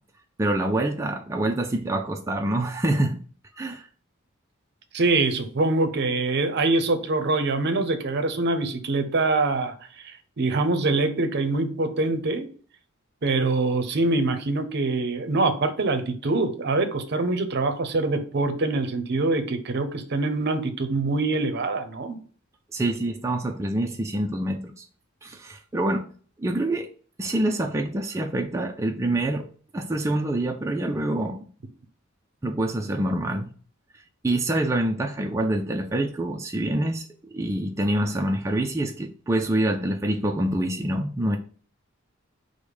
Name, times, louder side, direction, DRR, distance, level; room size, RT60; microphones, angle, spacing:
voice 1, 0.4-3.2 3.6-3.9 22.7-24.8 25.2-26.1 26.4-26.9 27.2-29.5 29.7-31.5 32.4-33.5 34.2-41.4, right 1 dB, 15° right, 0.3 m, -26 dB
voice 2, 4.9-12.5 13.2-22.2, right 3 dB, 55° right, 0.6 m, -24 dB
5.1 x 2.1 x 4.8 m
head